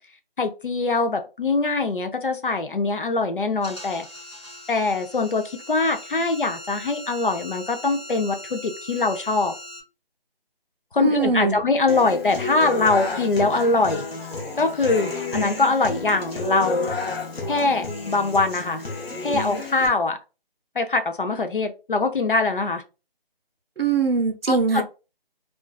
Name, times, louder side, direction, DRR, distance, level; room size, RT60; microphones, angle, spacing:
voice 1, 0.4-4.1 4.7-9.5 10.9-14.0 14.6-16.9 17.5-18.8 19.2-20.2 20.8-22.8 24.5-24.8, left 3 dB, 60° left, 6 dB, 0.5 m, -23 dB
sound 1, 3.6-9.8, left 1 dB, 30° left, 0.8 m, -40 dB
voice 2, 11.0-11.6 23.8-24.8, right 4 dB, 70° right, 4 dB, 0.6 m, -21 dB
Human voice / Acoustic guitar, 11.9-19.9, left 2 dB, 80° left, 0.8 m, -31 dB
2.5 x 2.2 x 2.2 m, 0.30 s
figure-of-eight pair, 180°, 30 cm